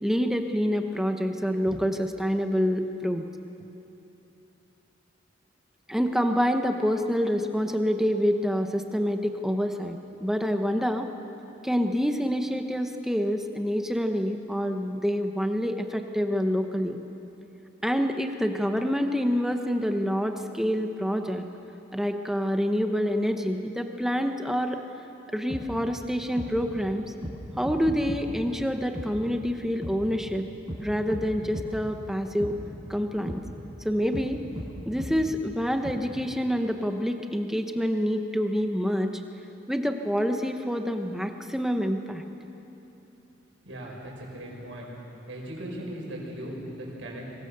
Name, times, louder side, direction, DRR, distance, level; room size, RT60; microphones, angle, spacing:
voice 1, 0.0-3.3 5.9-11.1 11.6-17.0 17.8-21.4 21.9-24.8 25.3-27.1 27.6-30.5 30.8-32.5 32.9-33.4 33.8-34.4 34.9-39.1 39.7-42.2, equal, ahead, 5 dB, 1.0 m, -27 dB
sound 1, 25.5-25.6 26.4-26.5 27.2-27.4 27.6-28.2 28.9-29.1 29.8-29.9 30.7-30.8 31.1-31.2 31.5-31.7 32.4-32.5 33.3-33.4 34.1-34.3 34.6-34.7 35.0-35.1 35.8-35.9, equal, 20° right, 5.2 m, -35 dB
voice 2, 43.6-44.9 45.3-47.3, right 1 dB, 80° right, -2 dB, 6.4 m, -38 dB
25.0 x 23.0 x 6.7 m, 3.0 s
head